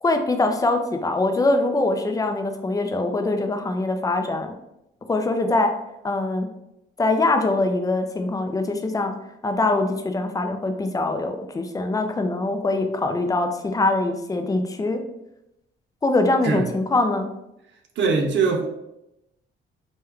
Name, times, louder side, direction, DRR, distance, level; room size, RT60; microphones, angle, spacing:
voice 1, 0.0-4.6 5.1-5.7 6.0-6.5 7.0-9.1 9.4-15.0 16.0-17.3, left 2 dB, 20° left, 6 dB, 0.4 m, -23 dB
voice 2, 18.0-18.7, right 4 dB, 65° right, 1 dB, 0.7 m, -21 dB
3.0 x 2.3 x 3.5 m, 0.86 s
cardioid pair, 90°, 20 cm